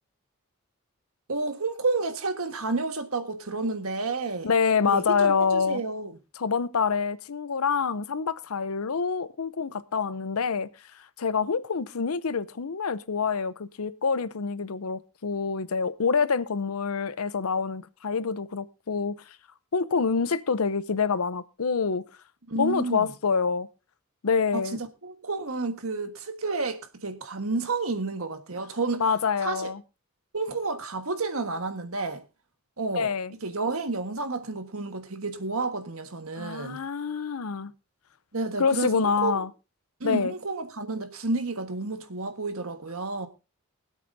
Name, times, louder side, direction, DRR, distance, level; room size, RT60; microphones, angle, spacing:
voice 1, 1.3-4.5 4.8-6.1 22.5-23.1 24.5-29.0 29.4-29.7 30.3-32.2 32.8-33.1 33.4-36.8 38.3-39.4 40.0-43.3, right 3 dB, 80° right, 1.5 m, -30 dB
voice 2, 4.4-5.8 6.4-10.7 11.2-19.1 19.7-22.0 22.6-23.7 24.2-24.8 29.0-29.8 32.9-33.3 36.4-37.7 38.6-39.5 40.0-40.3, left 5 dB, 85° left, 0.7 m, -26 dB
23.5 x 8.3 x 2.7 m
head